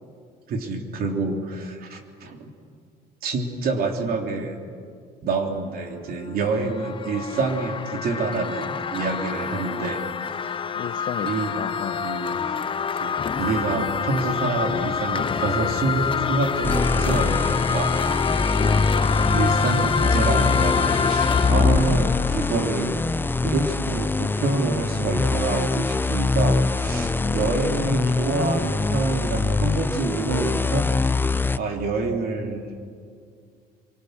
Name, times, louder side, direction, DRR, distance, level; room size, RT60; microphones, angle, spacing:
voice 1, 0.5-2.5 3.2-4.6 5.2-10.0 11.2-11.6 12.0-12.4 12.9-18.2 19.0-23.0 23.4-30.9 31.6-32.6, right 3 dB, 60° right, 3 dB, 3.3 m, -27 dB
sound 1, 6.3-23.2, left 6 dB, 30° left, 0.9 m, -26 dB
voice 2, 10.8-11.3 11.6-12.1 18.6-18.9 27.0-28.2, left 9 dB, 55° left, 13 dB, 1.0 m, -34 dB
sound 2, 16.6-31.6, left 3 dB, 10° left, 0.5 m, -23 dB
25.5 x 24.0 x 6.7 m, 2.3 s
cardioid pair, 110°, 17 cm